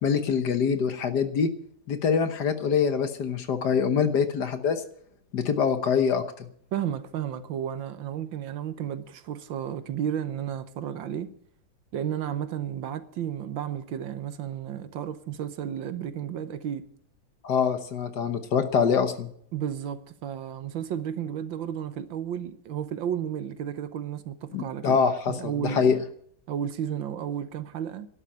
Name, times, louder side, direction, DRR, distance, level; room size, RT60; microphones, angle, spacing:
voice 1, 0.0-1.5 1.9-4.8 5.3-6.5 17.4-19.3 24.5-25.3 25.6-26.0, left 6 dB, 55° left, 1.6 m, -24 dB
voice 2, 6.7-11.3 11.9-16.9 19.5-25.0 25.3-26.0 26.5-28.1, right 9 dB, 70° right, 1.6 m, -32 dB
12.0 x 11.5 x 8.6 m
omnidirectional pair, 2.3 m